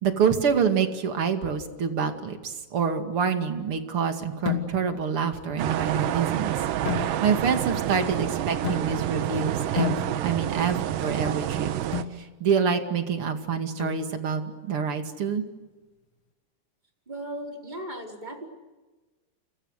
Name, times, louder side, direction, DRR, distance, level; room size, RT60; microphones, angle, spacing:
voice 1, 0.0-6.6 6.8-11.7 12.1-15.4, right 6 dB, 40° right, 6 dB, 2.7 m, -27 dB
sound 1, 4.5-5.1 6.8-7.6 8.6-9.2 9.8-10.6 11.9-12.2 13.8-14.4, left 8 dB, 40° left, 3.2 m, -32 dB
sound 2, 5.6-12.0, right 12 dB, 70° right, 2.5 m, -28 dB
voice 2, 17.1-18.5, right 1 dB, 10° right, 1 dB, 4.6 m, -36 dB
30.0 x 29.5 x 6.6 m, 1.2 s
omnidirectional pair, 4.5 m